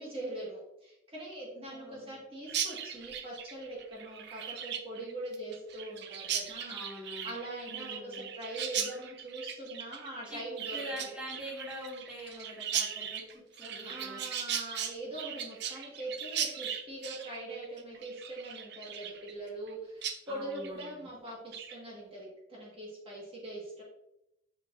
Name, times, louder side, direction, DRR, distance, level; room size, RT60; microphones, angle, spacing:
voice 1, 0.0-10.8 13.8-23.8, right 1 dB, 30° right, -4 dB, 1.7 m, -42 dB
voice 2, 1.6-2.2 6.7-7.3 7.7-8.3 10.3-10.4 10.7-13.2 13.5-14.3 20.3-21.1, equal, 5° right, -6 dB, 1.7 m, -44 dB
Chirp tweet, 2.5-19.7 20.0-20.2 20.5-20.9 21.3-21.7, right 8 dB, 55° right, 0.6 m, -38 dB
6.5 x 6.2 x 2.6 m, 0.83 s
head